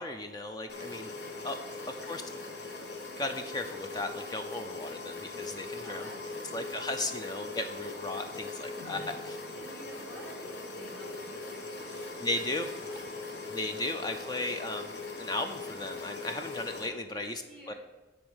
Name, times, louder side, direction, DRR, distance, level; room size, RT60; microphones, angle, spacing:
voice 1, 0.0-1.1 1.4-1.6 1.9-2.2 3.2-6.1 6.5-9.4 12.2-12.7 13.5-17.4 17.7-17.8, left 2 dB, 25° left, 6 dB, 0.4 m, -36 dB
sound 1, 0.7-16.9, left 3 dB, 70° left, 1.1 m, -41 dB
voice 2, 1.2-2.9 5.8-7.3 8.3-8.6 9.0-9.1 9.5-10.4 10.8-12.1 12.7-13.4 17.1-17.7, equal, 5° left, -5 dB, 1.8 m, -53 dB
9.8 x 4.0 x 6.2 m, 1.2 s
head